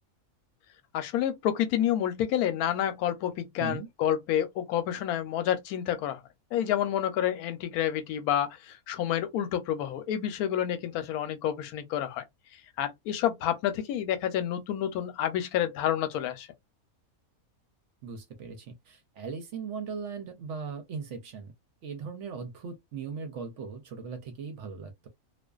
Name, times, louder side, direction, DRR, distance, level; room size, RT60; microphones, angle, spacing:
voice 1, 0.9-6.2 6.5-12.2 12.8-16.5, left 10 dB, 90° left, 1.1 m, -29 dB
voice 2, 18.0-21.5 21.8-25.1, right 5 dB, 65° right, 0.8 m, -39 dB
2.4 x 2.3 x 2.2 m
omnidirectional pair, 1.5 m